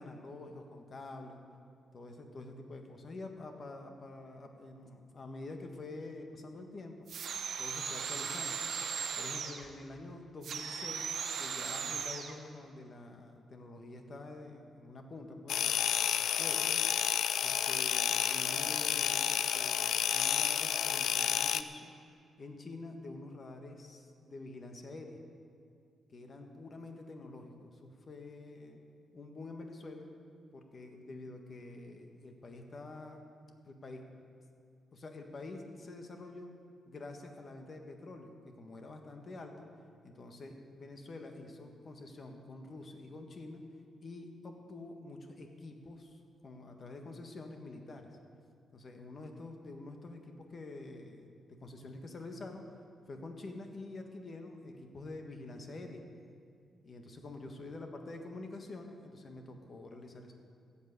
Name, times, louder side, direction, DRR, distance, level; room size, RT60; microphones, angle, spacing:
voice 1, 0.0-1.4 1.9-7.1 7.6-8.6 9.2-16.8 17.4-21.9 22.4-25.2 26.1-28.8 29.1-30.1 30.5-33.2 33.7-34.0 34.9-36.5 36.8-39.7 40.0-43.6 44.0-48.1 48.7-51.3 51.6-52.6 53.1-56.0 56.8-60.3, left 2 dB, 40° left, 4 dB, 1.5 m, -47 dB
sound 1, 7.1-9.7 10.4-12.3, right 6 dB, 65° right, 1.2 m, -37 dB
sound 2, 15.5-21.6, left 9 dB, 90° left, 0.5 m, -30 dB
14.5 x 8.4 x 8.3 m, 2.4 s
cardioid pair, 135°, 0 cm